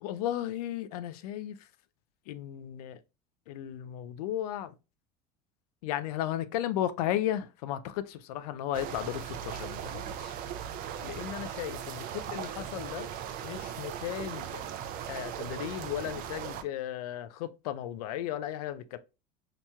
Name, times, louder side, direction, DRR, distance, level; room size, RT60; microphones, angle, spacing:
voice 1, 0.0-1.7 2.3-3.0 3.5-4.7 5.8-10.3 11.0-13.1 13.4-14.7 15.1-19.0, left 11 dB, 90° left, 0.4 m, -35 dB
sound 1, 8.7-16.6, right 9 dB, 50° right, 0.4 m, -38 dB
4.3 x 2.9 x 2.2 m
supercardioid pair, 125°, 19 cm